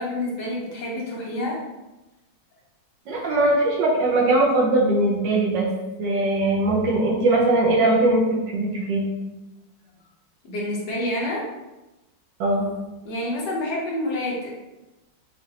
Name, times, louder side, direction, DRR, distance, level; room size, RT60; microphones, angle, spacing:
voice 1, 0.0-1.6 10.4-11.5 13.0-14.5, left 1 dB, 65° left, -4 dB, 1.4 m, -28 dB
voice 2, 3.1-5.7 6.0-9.1 12.4-12.7, right 2 dB, 70° right, -1 dB, 1.4 m, -20 dB
5.1 x 2.5 x 2.8 m, 1.0 s
omnidirectional pair, 2.1 m